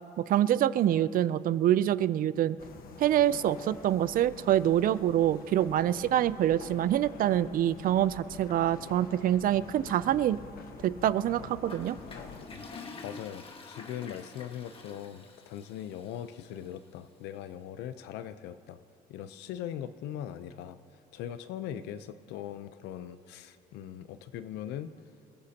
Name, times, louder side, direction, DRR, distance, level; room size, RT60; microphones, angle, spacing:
voice 1, 0.2-2.6 3.0-10.4 10.8-12.0, right 11 dB, 55° right, 16 dB, 0.5 m, -26 dB
sound 1, 2.6-12.5, left 5 dB, 60° left, 1.4 m, -47 dB
Toilet flush, 11.6-16.7, left 4 dB, 35° left, 1.5 m, -47 dB
voice 2, 12.5-18.8 19.1-20.8 21.1-24.9, left 10 dB, 90° left, 12 dB, 0.7 m, -40 dB
28.0 x 15.0 x 2.9 m, 2.6 s
cardioid pair, 110°, 17 cm